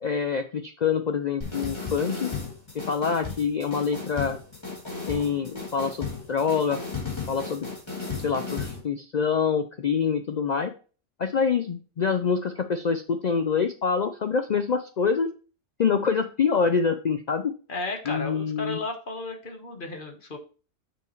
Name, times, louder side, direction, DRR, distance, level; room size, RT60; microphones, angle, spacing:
voice 1, 0.0-2.3 2.7-4.4 5.1-6.8 7.3-7.7 8.2-10.7 11.2-15.3 15.8-17.5 18.1-18.8, left 6 dB, 70° left, 8 dB, 0.4 m, -26 dB
sound 1, 1.4-8.8, left 4 dB, 20° left, 2.6 m, -35 dB
voice 2, 17.7-20.4, left 2 dB, 40° left, 3 dB, 1.4 m, -34 dB
7.0 x 6.0 x 3.1 m, 0.37 s
omnidirectional pair, 1.4 m